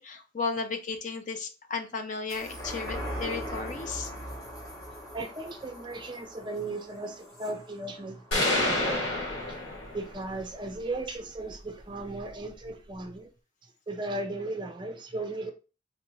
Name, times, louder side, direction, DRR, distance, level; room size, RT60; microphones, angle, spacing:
voice 1, 0.0-4.1, left 4 dB, 40° left, 0.5 m, -34 dB
sound 1, 2.3-9.1 9.5-9.6, equal, 20° left, 1.0 m, -40 dB
voice 2, 5.1-9.0 9.5-9.6 9.9-13.3 13.6-15.5, right 2 dB, 25° right, 0.4 m, -36 dB
sound 2, 8.3-10.3, left 2 dB, 80° left, 1.2 m, -28 dB
3.3 x 2.5 x 3.0 m
head